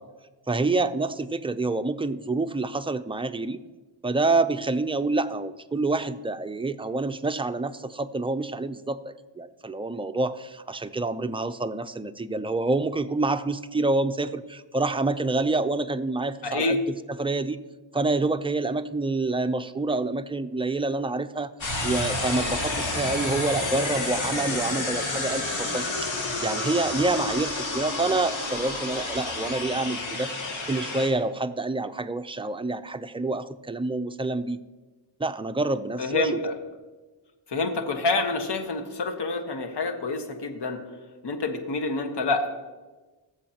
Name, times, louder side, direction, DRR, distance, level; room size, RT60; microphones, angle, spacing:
voice 1, 0.5-3.6 4.0-16.8 17.2-17.6 17.9-21.5 21.8-30.3 30.7-34.6 35.2-36.4, right 3 dB, 10° right, 9 dB, 0.5 m, -27 dB
voice 2, 16.4-16.8 36.0-36.5 37.5-40.8 41.2-42.5, left 3 dB, 60° left, 5 dB, 1.5 m, -27 dB
sound 1, 21.6-31.1, left 2 dB, 85° left, 2.3 m, -30 dB
20.5 x 7.3 x 2.9 m, 1.2 s
cardioid pair, 65°, 45 cm